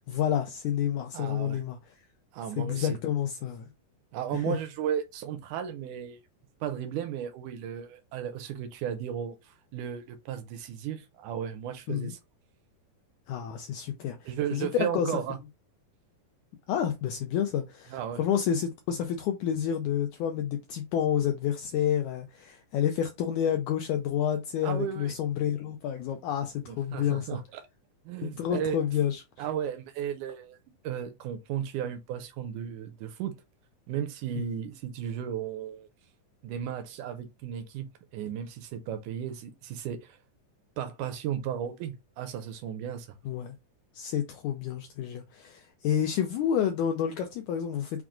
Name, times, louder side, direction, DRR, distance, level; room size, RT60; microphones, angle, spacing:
voice 1, 0.1-1.8 2.6-3.7 4.3-4.6 11.9-12.1 13.3-15.1 16.7-27.4 28.2-29.2 34.4-34.5 43.3-43.6 43.9-48.0, left 9 dB, 85° left, 1.7 m, -29 dB
voice 2, 1.1-1.6 2.3-3.0 4.1-6.2 6.6-12.2 14.3-15.4 17.9-18.2 24.6-25.1 26.7-27.6 28.1-28.8 29.0-29.1 29.4-30.6 30.8-33.3 33.9-35.9 36.4-37.9 38.1-40.2 40.8-43.1, right 9 dB, 85° right, 1.8 m, -34 dB
6.0 x 2.3 x 3.6 m
omnidirectional pair, 4.1 m